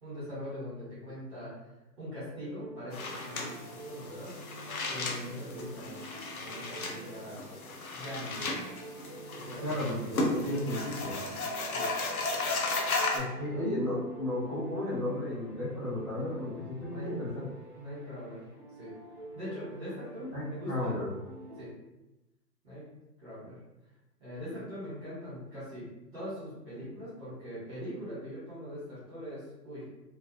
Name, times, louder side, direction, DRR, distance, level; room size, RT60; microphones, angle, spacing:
voice 1, 0.0-1.5 2.0-3.5 3.8-4.5 4.9-6.0 6.3-7.5 7.9-8.7 9.3-9.8 11.7-11.9 13.5-13.6 16.1-16.5 16.9-17.3 17.8-18.4 18.8-18.9 19.3-21.0 21.6-21.7 22.6-22.9 23.2-23.6 24.2-29.9, equal, 15° right, -11 dB, 1.0 m, -42 dB
sound 1, 2.2-21.6, right 1 dB, 30° right, 0.4 m, -48 dB
sound 2, 2.9-13.2, left 2 dB, 60° left, 0.6 m, -35 dB
voice 2, 9.6-11.2 13.1-17.5 20.2-21.1, left 1 dB, 20° left, -19 dB, 0.6 m, -34 dB
2.4 x 2.2 x 2.7 m, 0.98 s
hypercardioid pair, 160°, 49 cm